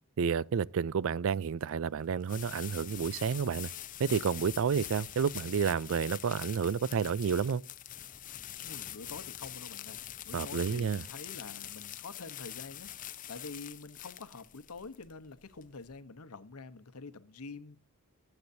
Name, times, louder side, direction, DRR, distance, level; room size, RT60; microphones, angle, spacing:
voice 1, 0.2-3.7 4.0-7.6 10.3-11.0, right 6 dB, 60° right, 0.4 m, -30 dB
sound 1, 1.1-16.0, left 12 dB, 35° left, 0.6 m, -44 dB
voice 2, 8.6-10.0 10.2-17.8, left 4 dB, 85° left, 0.9 m, -47 dB
18.5 x 7.9 x 2.7 m
head